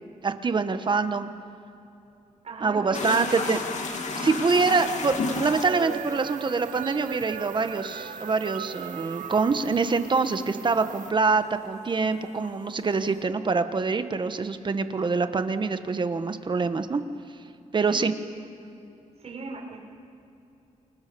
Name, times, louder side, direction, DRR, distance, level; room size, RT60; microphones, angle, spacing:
voice 1, 0.2-1.3 2.6-3.6 4.2-17.0 17.7-18.1, right 4 dB, 35° right, 9 dB, 1.3 m, -25 dB
voice 2, 2.4-3.5 4.1-4.5 17.9-18.4 19.2-19.8, right 4 dB, 55° right, -2 dB, 6.1 m, -39 dB
sound 1, 2.9-11.5 11.7-13.1, left 4 dB, 65° left, 2.6 m, -34 dB
sound 2, 4.5-11.1, right 9 dB, 90° right, 0.8 m, -39 dB
29.0 x 23.5 x 7.0 m, 2.9 s
wide cardioid pair, 120°, 13 cm